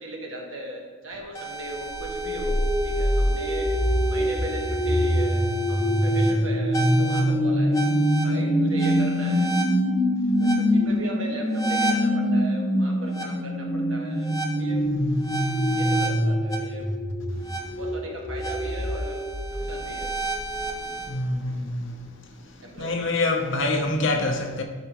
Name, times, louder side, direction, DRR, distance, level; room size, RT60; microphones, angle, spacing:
voice 1, 0.0-5.4 5.7-7.9 8.2-9.8 10.4-14.8 15.7-16.9 17.7-20.1 22.6-23.1, right 1 dB, 65° right, 1.4 m, -38 dB
sound 1, 1.3-21.1, equal, 15° left, 0.6 m, -24 dB
voice 2, 14.9-15.4 21.0-22.0 22.8-24.6, left 2 dB, 55° left, 0.8 m, -26 dB
12.0 x 4.6 x 3.0 m
head